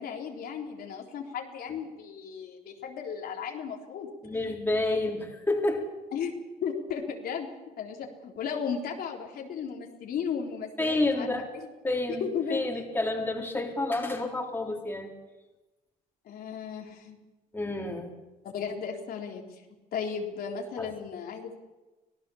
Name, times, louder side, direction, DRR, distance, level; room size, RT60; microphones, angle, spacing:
voice 1, 0.0-4.1 6.1-6.4 6.6-7.5 7.8-11.3 11.5-11.7 12.1-12.6 16.3-17.2 18.4-19.4 19.9-21.6, left 7 dB, 65° left, 1 dB, 3.8 m, -35 dB
voice 2, 4.2-5.9 10.8-11.5 11.8-15.1 17.5-18.1 20.8-20.9, left 2 dB, 10° left, 0 dB, 3.8 m, -29 dB
26.0 x 17.5 x 7.2 m, 1.1 s
cardioid pair, 110°, 17 cm